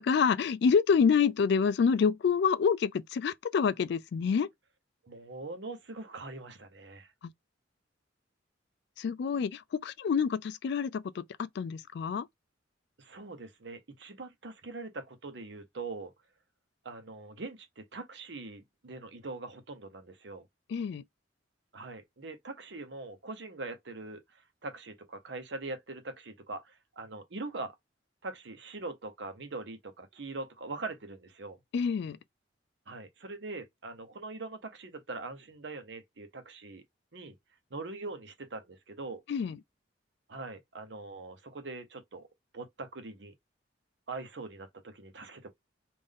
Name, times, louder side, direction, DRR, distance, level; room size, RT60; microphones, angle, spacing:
voice 1, 0.0-4.5 7.2-7.3 9.0-12.3 20.7-21.0 31.7-32.2 39.3-39.6, left 6 dB, 60° left, 0.3 m, -27 dB
voice 2, 5.0-7.1 13.0-16.1 16.8-20.5 21.7-27.7 28.2-31.6 32.9-36.8 37.1-37.3 37.7-39.2 40.3-42.3 42.5-43.3 44.1-45.5, right 3 dB, 65° right, 0.8 m, -42 dB
3.6 x 2.5 x 3.5 m
head